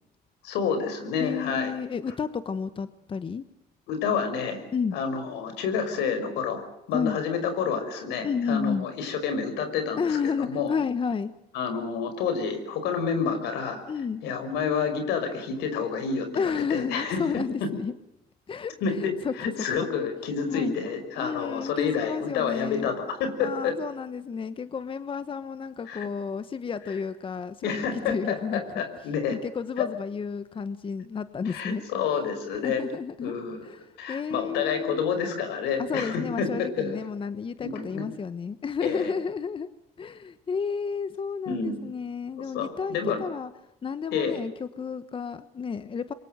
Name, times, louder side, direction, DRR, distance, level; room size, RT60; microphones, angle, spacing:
voice 1, 0.4-1.7 3.9-4.6 4.9-6.6 6.9-10.7 11.5-13.8 14.2-17.7 18.8-23.8 25.9-26.1 27.6-29.4 29.8-29.9 31.5-32.9 33.2-33.7 34.0-37.0 37.6-38.1 38.8-39.1 41.5-41.8 42.5-43.2 44.1-44.4, left 6 dB, 85° left, 8 dB, 5.6 m, -29 dB
voice 2, 1.2-3.4 4.7-5.0 6.9-7.2 8.2-8.9 10.0-11.3 13.9-14.2 16.3-17.9 18.5-19.8 20.5-20.8 21.2-22.9 23.4-28.8 29.3-31.8 32.6-33.3 33.6-33.8 34.1-35.1 35.8-39.7 40.0-43.5 43.8-46.1, left 6 dB, 30° left, 13 dB, 1.1 m, -31 dB
27.0 x 23.5 x 6.7 m, 0.88 s
cardioid pair, 110°, 17 cm